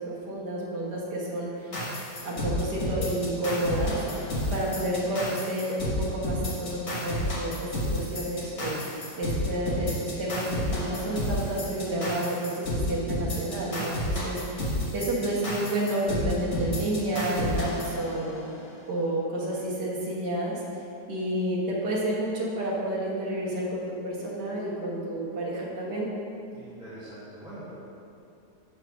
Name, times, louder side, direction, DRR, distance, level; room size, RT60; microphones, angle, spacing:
voice 1, 0.0-1.8 2.2-4.0 4.5-8.8 9.2-18.4 18.9-20.6 21.1-26.1, right 1 dB, 75° right, -4 dB, 1.9 m, -30 dB
sound 1, 1.7-18.6, left 1 dB, 45° left, 1.6 m, -31 dB
voice 2, 26.5-27.7, right 1 dB, 5° right, -12 dB, 1.2 m, -44 dB
6.2 x 4.8 x 5.7 m, 2.7 s
omnidirectional pair, 1.8 m